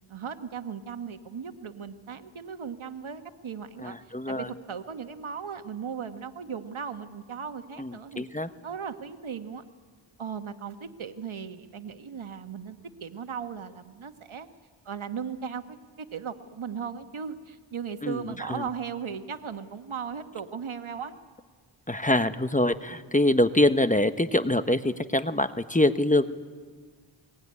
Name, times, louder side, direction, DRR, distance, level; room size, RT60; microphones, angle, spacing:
voice 1, 0.1-4.0 4.3-8.2 8.6-9.6 10.2-14.5 14.8-21.1, right 7 dB, 75° right, 8 dB, 1.4 m, -37 dB
voice 2, 3.8-4.5 7.8-8.5 18.0-18.2 18.5-18.6 21.9-26.2, left 1 dB, 15° left, 11 dB, 1.1 m, -24 dB
22.0 x 21.5 x 9.7 m, 1.5 s
cardioid pair, 45°, 49 cm